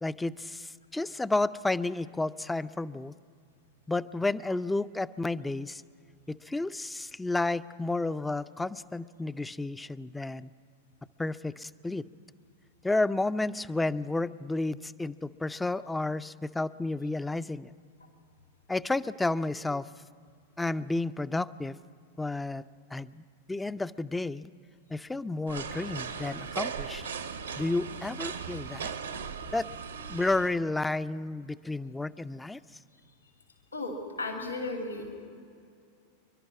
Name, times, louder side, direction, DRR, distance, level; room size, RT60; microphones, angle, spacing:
voice 1, 0.0-3.2 3.9-5.8 6.3-10.5 11.2-12.1 12.8-17.7 18.7-19.9 20.6-21.8 22.2-22.6 22.9-23.2 23.5-24.5 24.9-27.0 27.6-28.9 29.5-29.7 30.1-32.6, left 2 dB, 5° left, 15 dB, 0.5 m, -31 dB
sound 1, 25.5-30.5, right 6 dB, 75° right, 1.2 m, -38 dB
voice 2, 33.7-35.1, left 2 dB, 80° left, 2 dB, 2.6 m, -35 dB
28.0 x 12.0 x 9.5 m, 2.3 s
figure-of-eight pair, 90°, 0 cm